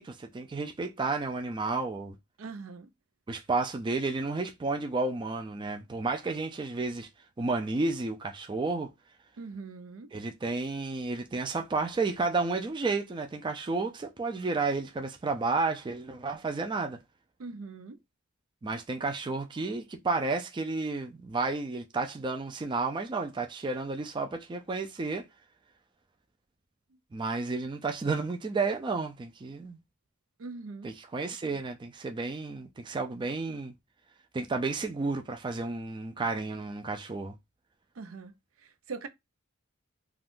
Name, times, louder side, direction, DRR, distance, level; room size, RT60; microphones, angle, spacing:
voice 1, 0.0-2.2 3.3-7.1 7.4-8.9 10.1-17.0 18.6-25.2 27.1-29.8 30.8-33.7 34.3-37.3, right 3 dB, 25° right, 0.3 m, -32 dB
voice 2, 2.4-2.9 9.4-10.1 17.4-18.0 30.4-30.9 37.9-39.1, right 4 dB, 80° right, 0.5 m, -42 dB
2.5 x 2.3 x 3.5 m
head